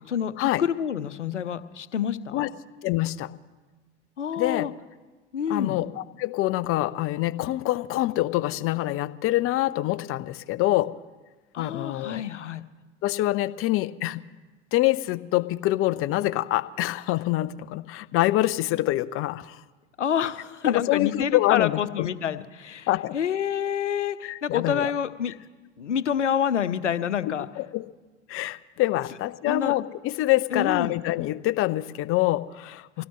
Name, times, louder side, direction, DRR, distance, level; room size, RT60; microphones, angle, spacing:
voice 1, 0.1-2.5 4.2-4.7 5.3-5.8 11.5-12.6 20.0-22.9 23.1-25.3 25.8-27.5 29.5-29.7 30.5-31.0 33.0-33.1, left 8 dB, 80° left, 14 dB, 0.8 m, -28 dB
voice 2, 2.8-3.3 4.4-4.7 5.5-10.9 11.6-12.2 13.0-14.2 14.7-19.6 20.7-22.1 22.9-23.2 24.2-24.9 27.2-27.8 28.3-33.0, left 16 dB, 40° left, 16 dB, 0.7 m, -25 dB
25.5 x 17.0 x 3.1 m, 1.3 s
figure-of-eight pair, 80°, 35 cm